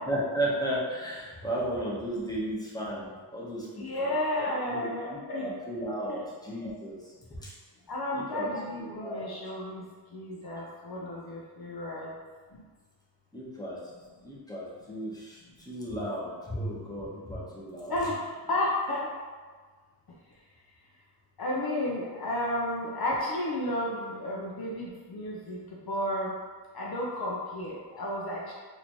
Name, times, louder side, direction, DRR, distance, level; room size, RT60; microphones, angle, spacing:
voice 1, 0.1-4.1 4.4-7.5 8.1-9.3 13.3-13.8 14.2-17.9, right 1 dB, 10° left, -6 dB, 1.1 m, -35 dB
voice 2, 3.7-5.5 6.1-6.2 7.9-9.8 10.1-12.1 12.5-12.6 17.9-19.1 21.4-25.6 25.9-26.3 26.7-28.5, left 1 dB, 55° left, -4 dB, 0.7 m, -32 dB
4.1 x 2.8 x 3.0 m, 1.5 s
cardioid pair, 65°, 45 cm